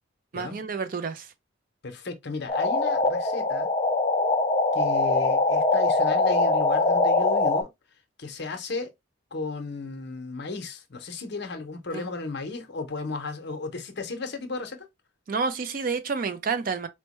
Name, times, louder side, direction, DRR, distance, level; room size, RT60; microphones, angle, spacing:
voice 1, 0.3-1.3 11.9-12.0 15.3-16.9, right 5 dB, 45° right, 0.4 m, -29 dB
voice 2, 1.8-3.7 4.7-7.7 8.2-8.9 9.3-14.9, left 3 dB, 55° left, 0.7 m, -35 dB
sound 1, 2.5-7.6, left 3 dB, 25° left, 0.4 m, -22 dB
4.4 x 2.1 x 2.9 m
head